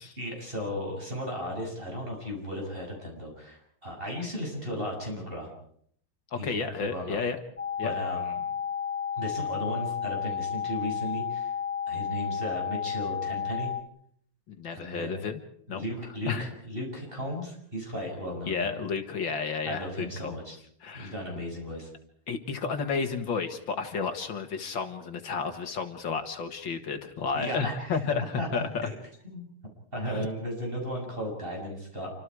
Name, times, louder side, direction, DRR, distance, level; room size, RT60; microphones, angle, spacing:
voice 1, 0.2-5.5 6.3-7.2 7.8-8.4 9.2-11.5 11.9-13.7 14.7-15.2 15.7-18.7 19.7-20.5 20.9-21.9 27.3-27.9 28.4-28.9 29.2-29.5 29.9-32.1, equal, 25° right, 0 dB, 7.4 m, -35 dB
voice 2, 6.3-7.4 7.8-7.9 14.5-15.4 15.7-15.8 16.3-16.5 18.5-20.4 20.8-21.1 22.3-28.9 30.1-30.3, left 5 dB, 65° left, 7 dB, 2.3 m, -32 dB
sound 1, 7.6-13.8, left 8 dB, 10° left, 0.6 m, -32 dB
28.5 x 25.5 x 4.8 m, 0.65 s
omnidirectional pair, 2.3 m